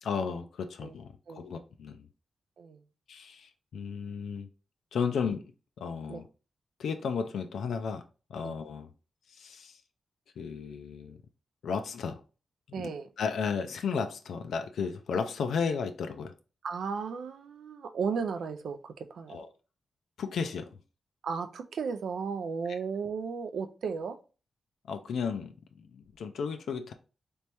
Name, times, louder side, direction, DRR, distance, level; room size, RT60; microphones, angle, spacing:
voice 1, 0.0-2.1 3.1-4.5 4.9-5.4 5.8-6.2 6.8-8.0 8.3-8.9 9.3-9.8 10.4-11.2 11.6-12.2 12.8-12.9 13.2-16.3 19.3-19.5 20.2-20.7 22.7-22.8 24.9-26.9, left 6 dB, 85° left, 0.3 m, -34 dB
voice 2, 12.7-13.1 16.6-19.4 21.2-24.2, right 5 dB, 80° right, 0.4 m, -35 dB
3.4 x 3.0 x 2.9 m
cardioid pair, 85°, 0 cm